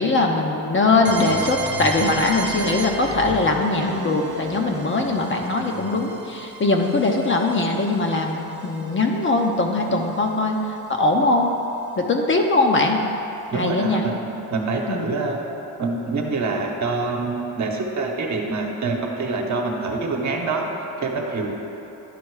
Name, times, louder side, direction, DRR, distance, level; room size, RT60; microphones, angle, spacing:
voice 1, 0.0-11.5 12.0-13.0 13.5-14.0 14.9-15.1, left 2 dB, 30° left, 2 dB, 0.8 m, -21 dB
sound 1, 1.1-10.8, right 3 dB, 30° right, 0.9 m, -34 dB
voice 2, 13.5-15.4 15.8-20.7 21.0-21.5, right 3 dB, 45° right, 1 dB, 1.2 m, -26 dB
11.0 x 4.2 x 4.8 m, 3.0 s
cardioid pair, 85°, 39 cm